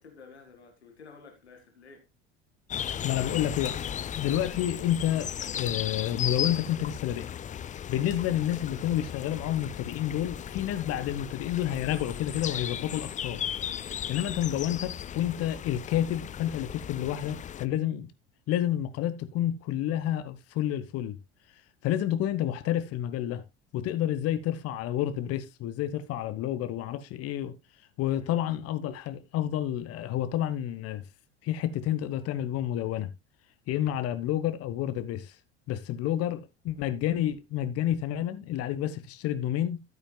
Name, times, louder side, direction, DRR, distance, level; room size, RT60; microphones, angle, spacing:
voice 1, 0.0-2.1 8.1-8.4 28.2-28.4, left 5 dB, 80° left, 2.2 m, -52 dB
sound 1, 2.7-17.6, left 9 dB, 25° left, 0.5 m, -36 dB
voice 2, 3.0-3.8 4.2-7.3 7.9-13.4 14.1-18.1 18.5-21.2 21.8-23.4 23.7-27.5 28.0-31.0 31.4-33.1 33.7-35.3 35.7-39.8, left 11 dB, 45° left, 1.2 m, -29 dB
13.5 x 8.8 x 2.3 m
figure-of-eight pair, 70°, 32 cm